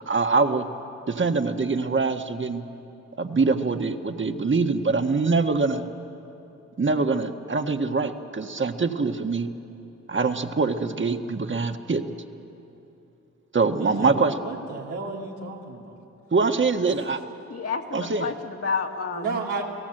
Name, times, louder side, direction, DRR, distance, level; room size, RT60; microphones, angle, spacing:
voice 1, 0.1-0.6 1.1-2.6 3.2-5.8 6.8-9.5 10.1-12.0 13.5-14.3 16.3-17.2 17.9-18.3, right 4 dB, 40° right, 6 dB, 1.6 m, -24 dB
voice 2, 13.8-16.0 16.8-16.9 19.1-19.6, right 4 dB, 90° right, -2 dB, 3.0 m, -33 dB
voice 3, 17.5-19.6, left 5 dB, 50° left, 2 dB, 2.1 m, -30 dB
29.0 x 17.5 x 7.9 m, 2.9 s
supercardioid pair, 50°, 30 cm